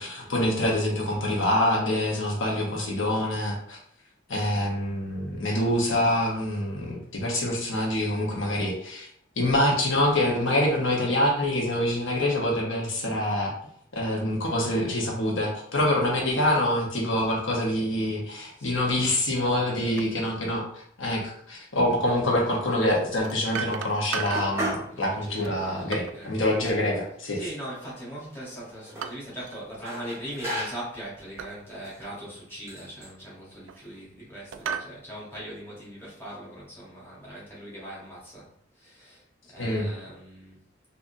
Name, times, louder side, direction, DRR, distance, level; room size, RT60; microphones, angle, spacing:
voice 1, 0.0-3.8 4.3-9.1 9.4-13.5 13.9-27.5 39.6-39.9, left 1 dB, 85° left, -1 dB, 0.9 m, -26 dB
voice 2, 18.6-19.2 19.5-20.1 24.9-26.3 27.3-38.5 38.8-39.2 39.5-40.6, equal, 10° left, -7 dB, 1.2 m, -41 dB
sound 1, 19.5-19.7 20.0-20.2 21.9-22.0 23.2-24.6 25.4-26.2 27.8-28.2 29.0-29.6 29.9-30.2 31.4-31.6 32.2-32.3 33.2-34.0 34.5-35.0, right 7 dB, 85° right, 0.3 m, -36 dB
sound 2, 24.3-24.9 25.3-25.4 26.2-26.3 26.6-27.6 28.5-29.1 29.8-31.0 31.7-32.0 32.7-33.1, right 1 dB, 15° right, 0.7 m, -35 dB
3.7 x 2.6 x 2.5 m, 0.65 s
head